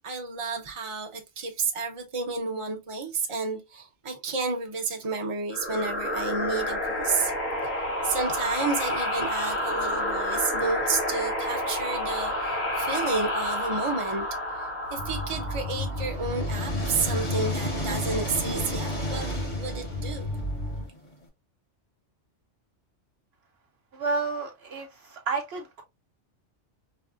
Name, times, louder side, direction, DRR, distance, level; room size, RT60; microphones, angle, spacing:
voice 1, 0.0-7.3 7.6-7.7 8.0-14.2 14.5-19.3 19.5-20.3, right 4 dB, 30° right, 0.7 m, -31 dB
sound 1, 5.5-16.8, left 1 dB, 60° left, 1.7 m, -30 dB
sound 2, 14.9-20.9, left 2 dB, 85° left, 3.0 m, -32 dB
sound 3, 15.3-21.2, equal, 40° left, 1.3 m, -35 dB
voice 2, 23.9-25.8, right 4 dB, 65° right, 0.8 m, -31 dB
5.2 x 2.0 x 2.4 m
omnidirectional pair, 1.3 m